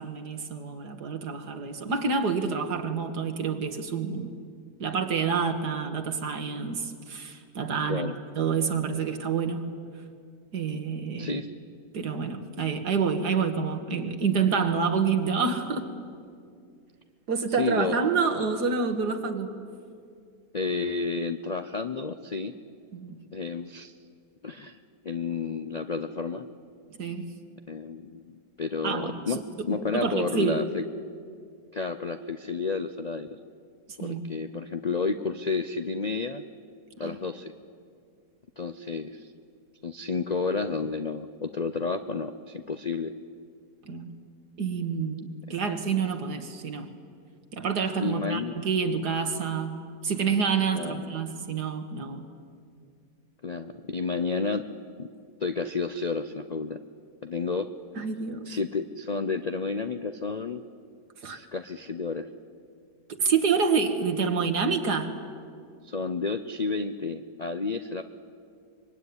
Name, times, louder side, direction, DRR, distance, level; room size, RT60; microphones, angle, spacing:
voice 1, 0.0-4.3 4.8-9.7 10.5-11.3 11.9-15.9 17.3-19.5 22.9-23.2 27.0-27.4 28.8-29.7 29.9-30.6 33.9-34.2 37.0-37.2 43.9-44.1 44.6-46.9 47.5-52.3 58.0-58.5 61.2-61.4 63.1-65.1, right 5 dB, 65° right, 7 dB, 2.3 m, -28 dB
voice 2, 17.6-18.0 20.5-22.5 23.3-23.9 24.4-24.8 25.0-26.5 27.7-30.8 31.7-33.4 34.0-36.4 37.0-37.5 38.6-39.3 39.8-43.1 45.5-45.6 48.0-48.5 50.7-51.2 53.4-54.6 55.0-55.1 55.4-56.8 57.2-57.7 58.5-60.6 61.3-62.3 65.8-68.0, left 4 dB, 60° left, 9 dB, 0.4 m, -31 dB
25.0 x 22.5 x 9.7 m, 2.3 s
omnidirectional pair, 1.9 m